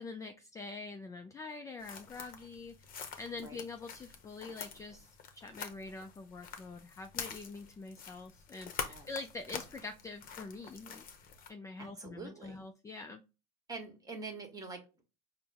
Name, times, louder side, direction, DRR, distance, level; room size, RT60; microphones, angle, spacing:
voice 1, 0.0-2.9 3.2-11.1 11.5-13.2, left 3 dB, 15° left, 6 dB, 0.3 m, -45 dB
sound 1, 1.8-11.5, left 6 dB, 45° left, 0.8 m, -46 dB
voice 2, 11.8-12.6 13.7-15.0, right 3 dB, 15° right, 4 dB, 1.4 m, -45 dB
4.4 x 2.1 x 3.4 m, 0.29 s
supercardioid pair, 95°, 21 cm